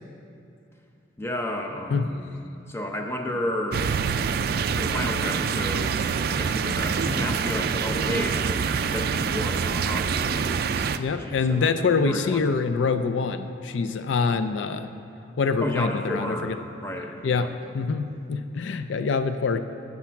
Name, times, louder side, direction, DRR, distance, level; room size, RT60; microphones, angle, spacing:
voice 1, 1.2-2.2 2.7-4.4 4.7-10.9 11.2-11.7 12.0-12.7 15.6-17.5, left 1 dB, 15° left, 2 dB, 0.7 m, -32 dB
sound 1, 3.7-11.0, right 6 dB, 55° right, 0.3 m, -26 dB
voice 2, 11.0-14.9 15.4-16.6 17.2-19.6, left 4 dB, 85° left, 10 dB, 0.4 m, -25 dB
10.5 x 7.3 x 5.9 m, 2.7 s
head